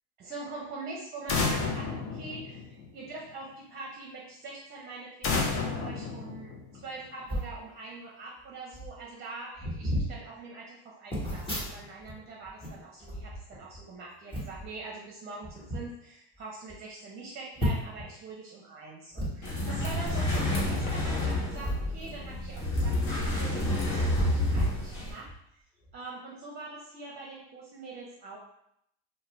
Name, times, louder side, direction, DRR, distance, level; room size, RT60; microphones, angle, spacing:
voice 1, 0.2-6.5 6.8-25.3 25.9-28.4, right 3 dB, 30° right, -3 dB, 0.6 m, -43 dB
sound 1, 1.3-3.1 5.2-7.0, left 4 dB, 45° left, 0.6 m, -31 dB
sound 2, 7.2-7.5 8.4-8.5 8.7-9.0 9.5-10.1 11.1-12.1 12.4-13.8 14.3-14.7 15.4-15.8 16.3-16.4 16.7-16.8 17.6-18.0 19.1-19.3 20.7-20.9 21.5-23.0 23.3-23.4 24.1-25.3 25.8-26.0, equal, 15° left, 1.1 m, -33 dB
sound 3, 19.4-25.1, left 1 dB, 60° left, 1.2 m, -29 dB
2.4 x 2.2 x 3.1 m, 0.75 s
supercardioid pair, 115°, 31 cm